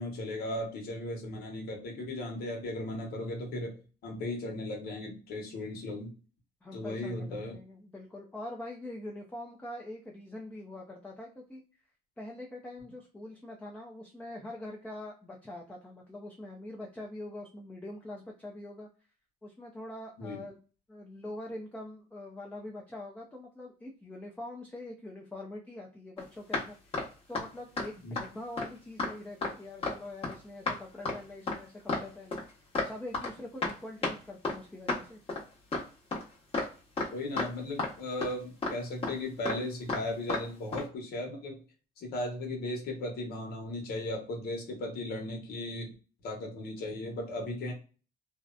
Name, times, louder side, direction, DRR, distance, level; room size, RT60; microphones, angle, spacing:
voice 1, 0.0-3.7 4.0-6.1 6.7-7.6 20.2-20.4 28.0-28.2 37.1-41.6 42.0-45.9 46.2-47.7, left 1 dB, 65° left, 1 dB, 1.1 m, -36 dB
voice 2, 6.6-11.6 12.2-18.9 19.4-20.6 20.9-26.9 27.3-32.4 32.8-35.2, left 1 dB, 10° left, -1 dB, 0.5 m, -44 dB
sound 1, 26.2-26.3 26.5-26.7 26.9-27.1 27.3-27.5 27.8-27.9 28.2-28.3 28.6-28.7 29.0-29.1 29.4-29.5 29.8-30.0 30.2-30.3 30.7-30.8 31.1-31.2 31.5-31.6 31.9-32.1 32.3-32.9 33.1-33.3 33.6-33.7 34.0-34.2 34.4-34.6 34.9-35.0 35.3-35.4 35.7-35.8 36.1-36.2 36.5-36.7 37.0-37.1 37.4-37.5 37.8-37.9 38.2-38.3 38.6-38.7 39.0-39.2 39.5-39.6 39.9-40.0 40.3-40.4 40.7-40.8, left 3 dB, 35° left, 1.0 m, -32 dB
2.6 x 2.1 x 2.4 m, 0.35 s
cardioid pair, 110°, 17 cm